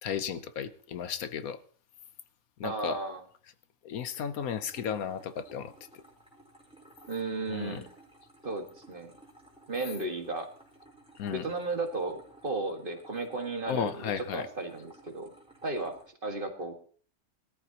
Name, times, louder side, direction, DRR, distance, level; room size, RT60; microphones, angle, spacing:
voice 1, 0.0-1.6 2.6-3.0 3.8-5.7 7.5-7.8 11.2-11.5 13.7-14.5, left 8 dB, 75° left, 12 dB, 1.3 m, -34 dB
voice 2, 2.6-3.2 7.1-7.9 8.4-9.1 9.7-10.5 11.3-15.3 15.6-16.7, right 2 dB, 35° right, 4 dB, 1.9 m, -34 dB
sound 1, 4.4-16.1, right 1 dB, 5° right, 4.5 m, -57 dB
20.5 x 13.5 x 2.9 m, 0.43 s
omnidirectional pair, 1.5 m